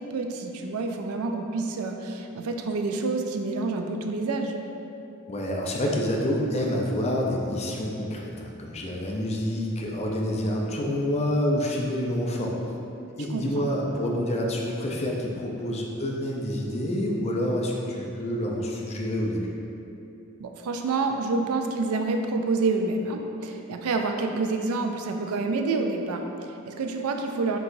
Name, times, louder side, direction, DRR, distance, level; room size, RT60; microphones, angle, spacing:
voice 1, 0.0-4.5 13.3-13.7 20.4-27.6, right 3 dB, 75° right, 4 dB, 0.4 m, -28 dB
voice 2, 5.3-12.6 13.2-19.5, equal, 30° left, -1 dB, 0.4 m, -28 dB
4.6 x 3.8 x 2.6 m, 2.8 s
head